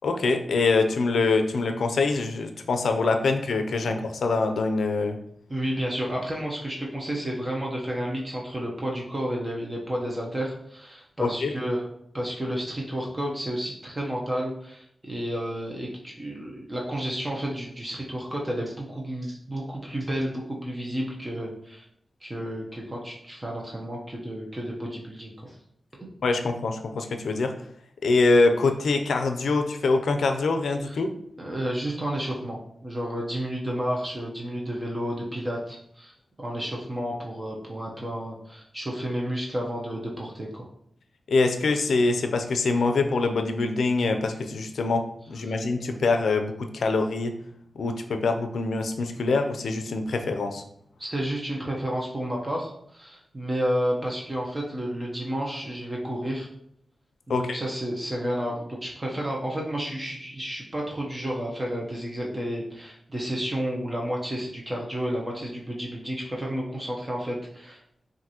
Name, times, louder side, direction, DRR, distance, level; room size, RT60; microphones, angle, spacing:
voice 1, 0.0-5.2 11.2-11.5 26.2-27.5 28.0-31.1 41.3-45.0 45.3-47.3 47.8-50.6 57.3-57.6, left 3 dB, 90° left, 6 dB, 0.4 m, -24 dB
voice 2, 5.5-11.9 12.1-21.8 22.2-25.6 26.0-26.1 30.8-31.0 31.4-40.7 51.0-56.5 57.3-67.8, equal, 25° right, -2 dB, 0.8 m, -31 dB
5.8 x 2.6 x 2.9 m, 0.69 s
wide cardioid pair, 105°, 0 cm